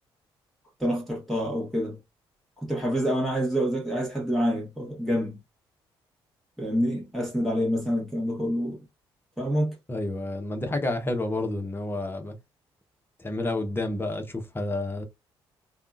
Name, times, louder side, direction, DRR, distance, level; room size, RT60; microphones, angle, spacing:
voice 1, 0.8-2.0 2.6-5.4 6.6-8.8 9.4-9.7, equal, ahead, 1.4 m, -27 dB
voice 2, 9.9-12.4 13.2-15.1, left 2 dB, 20° left, 1.0 m, -30 dB
3.4 x 2.4 x 2.5 m
figure-of-eight pair, 45°, 13 cm